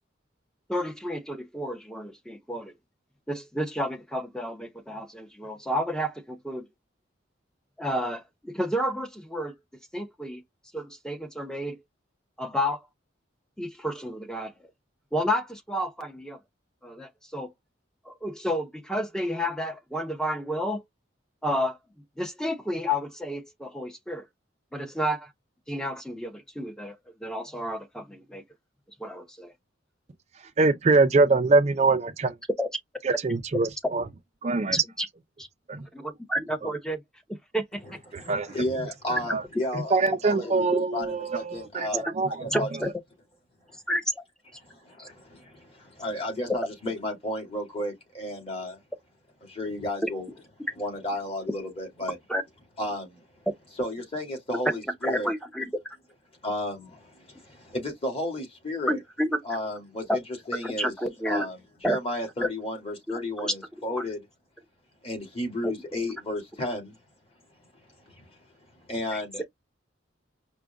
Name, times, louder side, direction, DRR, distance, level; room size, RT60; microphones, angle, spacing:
voice 1, 0.7-2.7 3.3-6.7 7.8-9.5 9.9-10.4 10.7-11.8 12.4-12.8 13.6-14.5 15.1-16.4 16.8-17.5 18.0-20.8 21.4-21.8 22.2-24.3 24.7-25.3 25.7-28.4 29.0-29.5 32.6-32.7 34.7-35.1 35.4-35.5 35.9-37.0 37.3-37.8 40.4-40.5 41.9-42.0 42.5-42.9 43.9-44.2 45.0-45.1 50.0-50.1 52.3-52.4 55.0-56.0 58.9-59.4 60.1-60.2 60.6-61.5 61.8-62.0 62.4-62.5 63.4-63.5 65.6-65.7 69.1-69.2, equal, 5° left, 0.7 m, -30 dB
voice 2, 30.6-32.3 33.2-34.0 34.4-34.8 35.7-35.8 38.3-38.5 39.3-39.4 39.9-41.9 42.2-42.3, right 3 dB, 35° right, 0.4 m, -23 dB
voice 3, 38.2-42.0 42.4-42.7 44.6-48.8 49.4-50.3 50.8-52.2 52.8-53.2 53.8-55.3 56.4-59.0 59.4-60.2 60.5-60.9 61.2-61.6 61.8-64.2 65.0-66.9 68.1-68.4 68.9-69.4, left 1 dB, 30° left, 2.2 m, -33 dB
4.9 x 2.2 x 3.4 m
head